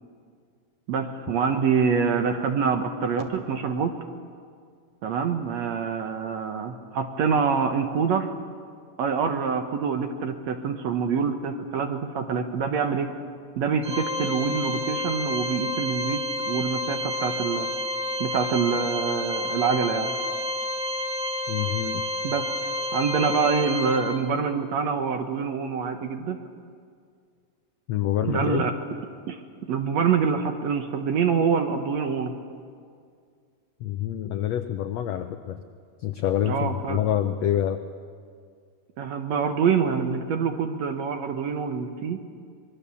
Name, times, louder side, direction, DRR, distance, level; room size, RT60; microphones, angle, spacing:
voice 1, 0.9-3.9 5.0-8.4 9.0-13.1 13.6-17.7 18.2-20.1 22.2-26.4 28.2-28.7 29.3-29.4 29.7-32.3 36.4-37.0 39.0-42.2, right 6 dB, 65° right, 6 dB, 1.8 m, -26 dB
Organ, 13.8-24.5, left 1 dB, 5° right, 1.1 m, -30 dB
voice 2, 21.5-22.1 27.9-28.7 33.8-35.6 36.0-37.8, left 11 dB, 90° left, 8 dB, 1.4 m, -26 dB
25.0 x 22.0 x 7.0 m, 2.2 s
omnidirectional pair, 4.1 m